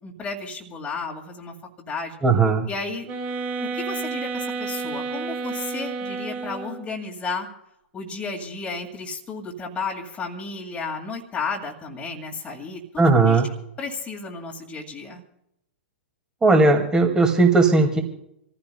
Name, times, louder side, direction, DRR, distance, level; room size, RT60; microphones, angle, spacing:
voice 1, 0.0-2.2 2.7-3.1 3.6-7.5 7.9-13.4 13.8-15.2, left 4 dB, 20° left, -1 dB, 2.3 m, -33 dB
voice 2, 2.2-2.7 13.0-13.5 16.4-18.0, right 3 dB, 10° right, 4 dB, 2.3 m, -17 dB
sound 1, 3.0-6.9, right 4 dB, 35° right, 5.8 m, -31 dB
27.0 x 15.0 x 2.3 m, 0.79 s
figure-of-eight pair, 105°, 6 cm